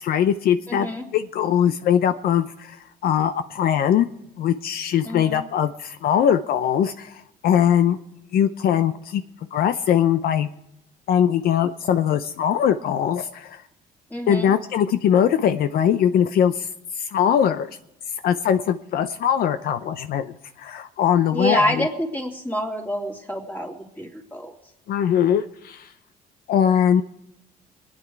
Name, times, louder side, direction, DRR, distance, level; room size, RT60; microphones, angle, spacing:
voice 1, 0.0-4.1 4.4-8.0 8.3-9.2 9.5-10.5 11.1-13.6 14.3-17.7 18.2-21.9 24.9-25.9 26.5-27.0, left 9 dB, 65° left, 10 dB, 0.6 m, -21 dB
voice 2, 0.7-1.0 5.0-5.4 14.1-14.5 21.3-24.5, left 1 dB, 10° left, 1 dB, 2.9 m, -27 dB
23.5 x 9.7 x 4.7 m, 0.83 s
cardioid pair, 110°, 17 cm